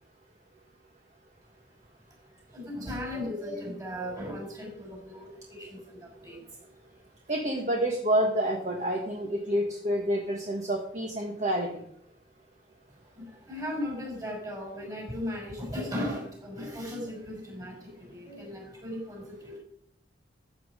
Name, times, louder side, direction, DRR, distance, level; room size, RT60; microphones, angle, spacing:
voice 1, 2.5-6.6 12.9-19.6, left 1 dB, 20° right, -1 dB, 6.0 m, -37 dB
voice 2, 7.3-11.8, right 1 dB, 40° right, 1 dB, 1.5 m, -28 dB
14.0 x 8.5 x 5.1 m, 0.70 s
head